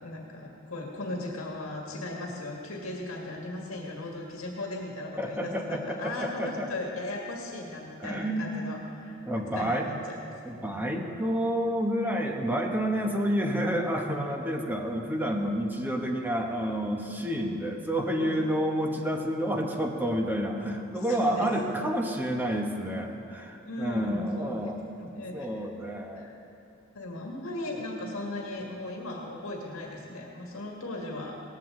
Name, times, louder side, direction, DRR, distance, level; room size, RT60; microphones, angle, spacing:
voice 1, 0.0-10.2 10.5-10.8 18.2-18.4 20.9-21.8 23.7-24.6 25.0-26.3 26.9-31.4, left 2 dB, 75° left, -1 dB, 1.9 m, -37 dB
voice 2, 5.2-6.7 8.0-8.7 9.2-9.9 10.4-24.8 25.3-26.3, equal, 10° right, 2 dB, 1.2 m, -29 dB
18.5 x 15.5 x 3.9 m, 2.8 s
head